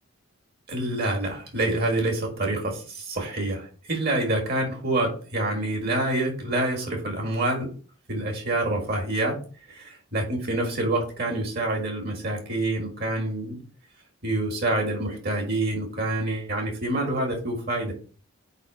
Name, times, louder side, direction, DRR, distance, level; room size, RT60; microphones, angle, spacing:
voice 1, 0.7-7.7 8.1-9.4 9.7-13.6 14.2-17.9, right 2 dB, 45° right, 2 dB, 1.8 m, -27 dB
4.9 x 4.2 x 4.8 m, 0.39 s
head